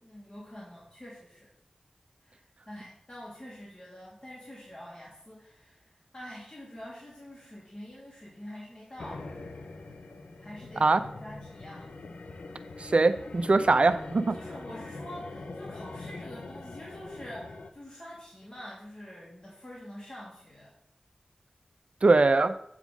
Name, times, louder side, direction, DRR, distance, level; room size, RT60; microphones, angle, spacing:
voice 1, 0.0-1.5 2.2-9.3 10.4-10.9 11.2-11.9 14.3-20.7, equal, 35° left, -6 dB, 2.5 m, -46 dB
sound 1, 9.0-17.7, left 3 dB, 90° left, 0.6 m, -43 dB
voice 2, 12.8-14.4 22.0-22.5, right 3 dB, 60° right, 11 dB, 0.5 m, -22 dB
8.2 x 3.7 x 6.1 m, 0.74 s
cardioid pair, 40°, 2 cm